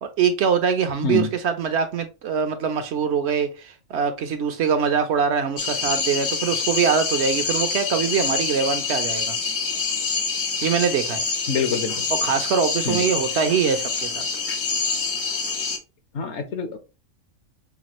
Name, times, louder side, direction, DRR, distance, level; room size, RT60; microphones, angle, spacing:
voice 1, 0.0-9.4 10.6-11.2 12.1-14.2, right 6 dB, 65° right, 0.8 m, -23 dB
sound 1, 5.6-15.8, left 5 dB, 85° left, 1.4 m, -26 dB
voice 2, 11.5-12.1 12.9-13.0 16.1-16.8, left 4 dB, 65° left, 1.1 m, -25 dB
5.8 x 2.3 x 2.9 m
omnidirectional pair, 1.3 m